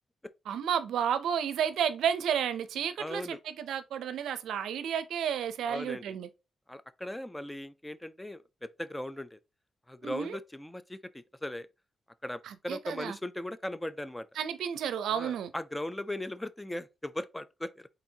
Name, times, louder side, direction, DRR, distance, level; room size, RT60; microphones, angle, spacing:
voice 1, 0.5-6.3 10.0-10.4 12.4-13.2 14.4-15.5, right 8 dB, 85° right, 0.4 m, -32 dB
voice 2, 3.0-3.4 5.7-6.2 6.7-9.4 9.9-11.7 12.2-14.3 15.1-17.9, left 1 dB, 10° left, 0.4 m, -38 dB
4.2 x 3.9 x 2.8 m
cardioid pair, 60°, 0 cm